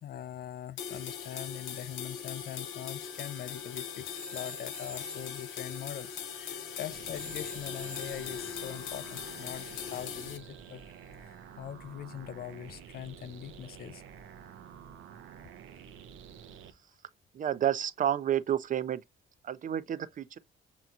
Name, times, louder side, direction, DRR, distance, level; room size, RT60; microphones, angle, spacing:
voice 1, 0.0-10.8 11.2-14.0, left 10 dB, 50° left, 0.4 m, -42 dB
sound 1, 0.8-10.4, left 7 dB, 80° left, 0.9 m, -40 dB
sound 2, 3.0-11.1, left 1 dB, 5° left, 0.6 m, -49 dB
sound 3, 6.9-16.7, right 8 dB, 85° right, 0.6 m, -50 dB
voice 2, 17.3-19.0 19.4-20.4, right 10 dB, 40° right, 0.5 m, -30 dB
5.6 x 2.9 x 2.4 m
cardioid pair, 90°, 20 cm